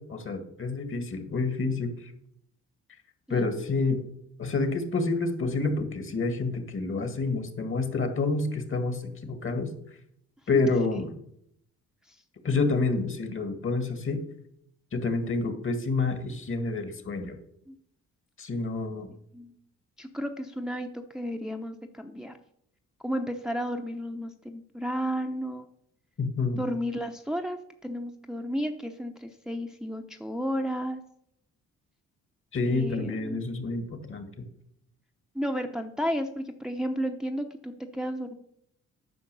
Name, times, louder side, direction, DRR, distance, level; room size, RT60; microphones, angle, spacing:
voice 1, 0.1-1.9 3.3-4.0 4.4-9.7 10.5-11.1 12.4-14.2 14.9-17.4 18.4-19.1 26.2-26.6 32.5-34.3, left 3 dB, 45° left, 8 dB, 1.8 m, -28 dB
voice 2, 20.0-22.4 23.0-25.7 26.6-31.0 32.7-33.4 35.3-38.3, equal, ahead, 5 dB, 0.8 m, -33 dB
9.6 x 5.7 x 6.8 m, 0.72 s
cardioid pair, 90°, 30 cm